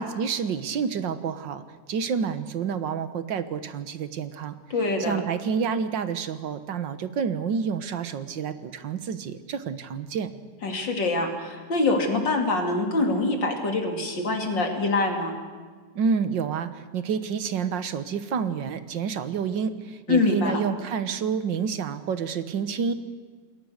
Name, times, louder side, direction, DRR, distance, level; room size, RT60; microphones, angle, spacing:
voice 1, 0.0-1.6 1.9-4.6 5.0-10.3 16.0-22.9, right 6 dB, 85° right, 11 dB, 1.9 m, -28 dB
voice 2, 4.7-5.2 10.6-15.3 20.1-20.6, left 3 dB, 85° left, 3 dB, 3.6 m, -24 dB
28.0 x 21.5 x 6.6 m, 1.5 s
omnidirectional pair, 1.9 m